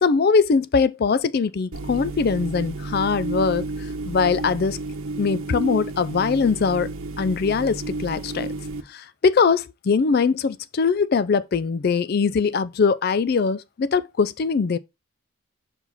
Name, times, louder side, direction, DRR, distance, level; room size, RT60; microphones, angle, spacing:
voice 1, 0.0-3.6 4.1-4.8 5.2-6.9 7.2-8.5 8.9-14.8, left 5 dB, 45° left, 0.4 m, -21 dB
sound 1, 1.7-8.8, right 2 dB, 85° right, 1.0 m, -31 dB
5.6 x 4.8 x 4.0 m
head